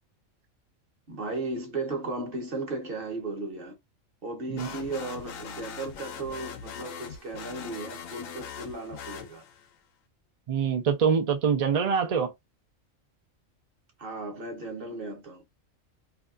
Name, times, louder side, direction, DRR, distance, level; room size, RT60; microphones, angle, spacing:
voice 1, 1.1-3.8 4.2-9.4 14.0-15.4, right 3 dB, 45° right, 1.0 m, -35 dB
sound 1, 4.5-9.8, left 7 dB, 90° left, 1.0 m, -41 dB
voice 2, 10.5-12.3, right 6 dB, 65° right, 0.3 m, -25 dB
2.7 x 2.3 x 2.3 m
omnidirectional pair, 1.4 m